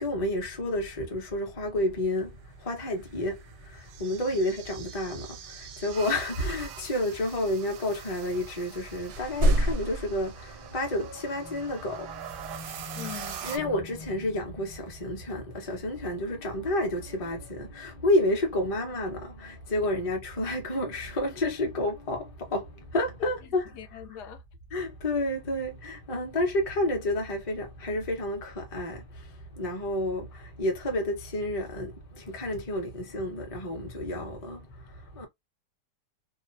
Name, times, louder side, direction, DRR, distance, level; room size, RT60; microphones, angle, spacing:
voice 1, 0.0-23.7 24.7-35.3, left 1 dB, 35° left, 0.6 m, -30 dB
sound 1, 2.7-13.6, right 9 dB, 85° right, 1.2 m, -44 dB
sound 2, 9.1-10.7 13.2-13.3, equal, 65° right, 0.7 m, -26 dB
voice 2, 12.9-13.8 23.2-24.4, left 10 dB, 80° left, 1.1 m, -43 dB
2.9 x 2.1 x 2.4 m
omnidirectional pair, 1.8 m